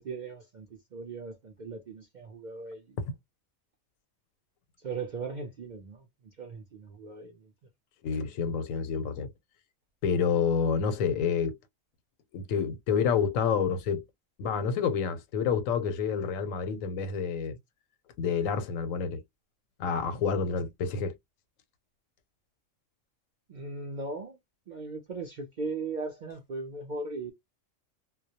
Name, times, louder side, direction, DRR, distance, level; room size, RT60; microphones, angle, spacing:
voice 1, 0.0-3.0 4.8-7.5 23.5-24.4 24.7-27.3, right 3 dB, 60° right, 0.4 m, -38 dB
voice 2, 8.0-9.3 10.0-11.6 12.3-14.0 14.4-17.6 18.2-19.2 19.8-21.1, left 6 dB, 90° left, 1.0 m, -28 dB
2.2 x 2.0 x 2.7 m
omnidirectional pair, 1.4 m